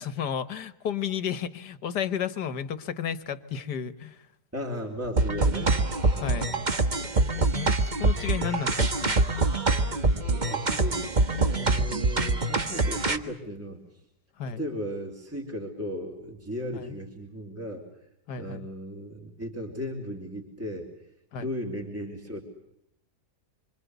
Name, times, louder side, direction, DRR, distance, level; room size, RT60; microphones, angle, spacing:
voice 1, 0.0-4.2 6.1-6.5 7.2-9.2 14.4-14.6 16.7-17.0 18.3-18.7 21.3-21.5, left 8 dB, 80° left, 13 dB, 1.9 m, -33 dB
voice 2, 4.5-5.8 6.1-6.6 10.2-13.8 14.5-17.8 18.4-20.9 21.4-22.4, equal, 10° right, 0 dB, 4.1 m, -36 dB
sound 1, 5.2-13.2, right 3 dB, 30° right, 1.4 m, -25 dB
26.5 x 25.0 x 8.2 m, 0.77 s
omnidirectional pair, 1.8 m